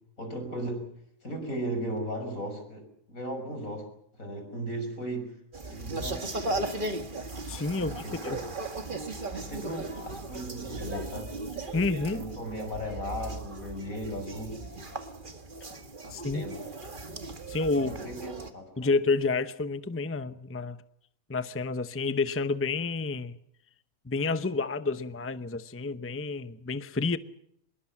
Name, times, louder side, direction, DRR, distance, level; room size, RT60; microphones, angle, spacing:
voice 1, 0.2-0.9 1.2-3.9 4.2-5.4 5.7-6.7 7.8-8.4 9.3-11.3 12.1-14.6 16.0-16.7 17.7-18.9, right 1 dB, 80° left, 6 dB, 6.4 m, -37 dB
sound 1, 5.5-18.5, right 2 dB, 35° right, 1.9 m, -37 dB
voice 2, 7.5-8.4 11.7-12.2 16.1-16.4 17.5-17.9 18.8-20.8 21.3-23.3 24.1-27.2, left 3 dB, 10° left, 12 dB, 0.7 m, -29 dB
25.0 x 21.5 x 7.4 m, 0.71 s
omnidirectional pair, 1.4 m